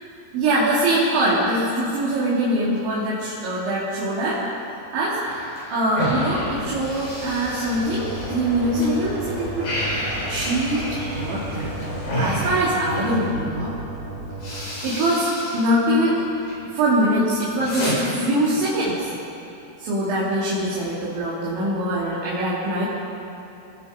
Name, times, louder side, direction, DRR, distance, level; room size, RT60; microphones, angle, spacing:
voice 1, 0.3-4.4 4.9-5.2 5.7-9.7 10.3-11.7 12.2-13.7 14.8-16.2 16.7-19.1 19.8-22.8, right 1 dB, 65° right, -8 dB, 5.7 m, -23 dB
sound 1, 5.3-8.9 9.2-13.3 13.9-14.0 14.3-15.7 16.0-16.6 17.0-17.9, equal, 45° left, 8.9 m, -30 dB
sound 2, 6.1-12.1, left 1 dB, 70° left, 7.8 m, -36 dB
sound 3, 7.8-14.6, right 3 dB, 85° right, 8.0 m, -35 dB
30.0 x 20.5 x 5.4 m, 2.8 s
omnidirectional pair, 5.8 m